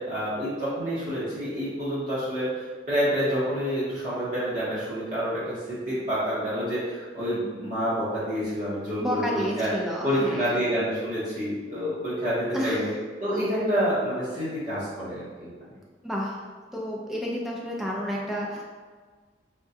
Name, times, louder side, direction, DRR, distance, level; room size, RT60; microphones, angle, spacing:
voice 1, 0.0-9.7 10.0-12.9 13.2-15.7, equal, 45° right, -11 dB, 0.8 m, -28 dB
voice 2, 9.0-10.6 12.5-12.8 16.0-16.4 16.7-18.6, equal, ahead, -4 dB, 0.4 m, -30 dB
3.5 x 2.2 x 2.7 m, 1.5 s
head